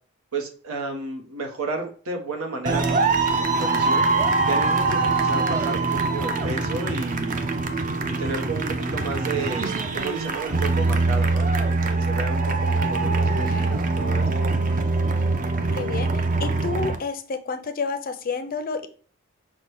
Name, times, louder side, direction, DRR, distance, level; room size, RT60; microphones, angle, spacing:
voice 1, 0.3-4.1 4.5-7.6 8.1-14.3, right 3 dB, 85° right, 3 dB, 0.8 m, -32 dB
sound 1, 2.7-17.0, right 3 dB, 40° right, 0.5 m, -23 dB
voice 2, 15.7-18.9, left 4 dB, 40° left, 8 dB, 0.4 m, -30 dB
5.7 x 2.1 x 3.1 m, 0.44 s
head